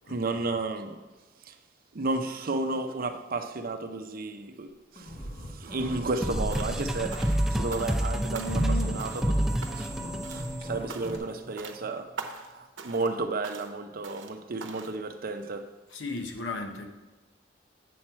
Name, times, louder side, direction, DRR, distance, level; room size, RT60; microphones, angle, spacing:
voice 1, 0.1-1.0 1.5-1.6 1.9-5.2 5.5-12.1 12.5-15.7, right 3 dB, 50° right, 0.6 m, -33 dB
sound 1, 5.0-6.5 6.9-11.2, right 1 dB, 30° left, 1.3 m, -39 dB
sound 2, 6.2-11.5, equal, ahead, 0.4 m, -29 dB
sound 3, 6.5-6.8 7.1-8.1 8.3-8.7 9.0-9.3 9.6-10.0 10.2-10.5 10.9-11.3 11.6-11.8 12.2-12.5 12.8-13.1 13.4-13.7 14.0-14.3 14.6-14.9, right 4 dB, 80° right, 0.8 m, -42 dB
voice 2, 15.9-16.9, left 3 dB, 70° left, 0.9 m, -35 dB
8.5 x 6.0 x 4.3 m
head